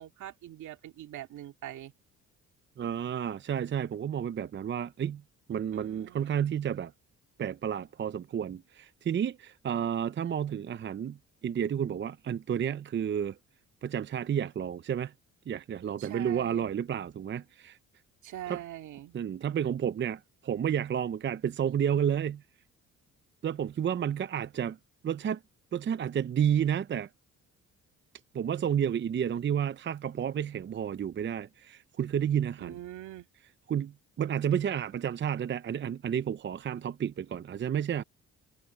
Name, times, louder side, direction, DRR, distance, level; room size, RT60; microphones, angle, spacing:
voice 1, 0.0-1.9 5.7-6.5 16.0-16.7 18.2-19.2 32.6-33.3, right 12 dB, 75° right, 2.3 m, -43 dB
voice 2, 2.8-5.2 5.5-6.9 7.4-11.2 11.4-13.4 13.8-15.1 15.5-17.8 18.5-18.6 19.1-22.4 23.4-24.8 25.0-25.4 25.7-27.1 28.3-32.8 33.7-38.0, right 9 dB, 40° right, 0.6 m, -31 dB
cardioid pair, 90°, 30 cm